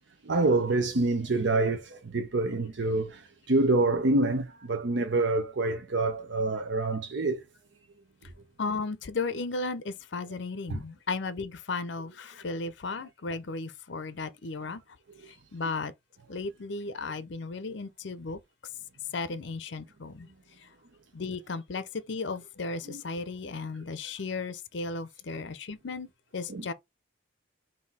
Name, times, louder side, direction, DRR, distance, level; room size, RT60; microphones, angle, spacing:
voice 1, 0.3-7.4 10.7-10.8 12.5-12.6 22.9-23.0 26.5-26.7, right 2 dB, 60° right, 0.6 m, -27 dB
voice 2, 8.6-14.8 15.5-15.9 16.3-18.4 19.1-20.3 21.1-26.1 26.3-26.7, left 3 dB, 60° left, 0.6 m, -35 dB
3.9 x 2.7 x 4.0 m
head